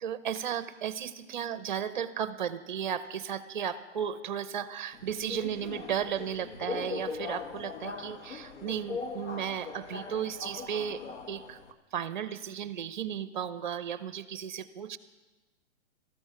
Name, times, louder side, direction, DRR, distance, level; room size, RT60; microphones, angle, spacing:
voice 1, 0.0-11.0 11.3-11.6 11.9-15.0, right 8 dB, 40° right, 13 dB, 0.8 m, -34 dB
Subway metro underground, 4.9-11.7, left 4 dB, 75° left, 1.8 m, -40 dB
19.0 x 14.0 x 4.7 m, 1.2 s
hypercardioid pair, 175°, 37 cm